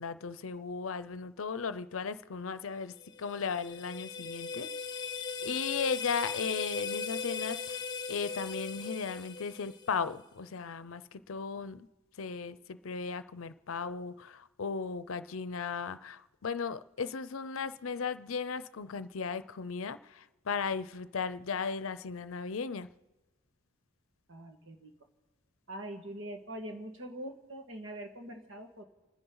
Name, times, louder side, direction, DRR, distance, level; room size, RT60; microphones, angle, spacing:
voice 1, 0.0-4.7 5.4-11.9 12.2-22.9, left 5 dB, 85° left, 14 dB, 0.6 m, -36 dB
sound 1, 3.0-10.1, left 5 dB, 20° left, 0.9 m, -38 dB
voice 2, 24.3-24.9 25.7-28.8, right 1 dB, 70° right, 4 dB, 1.8 m, -43 dB
29.5 x 10.0 x 3.9 m, 1.2 s
head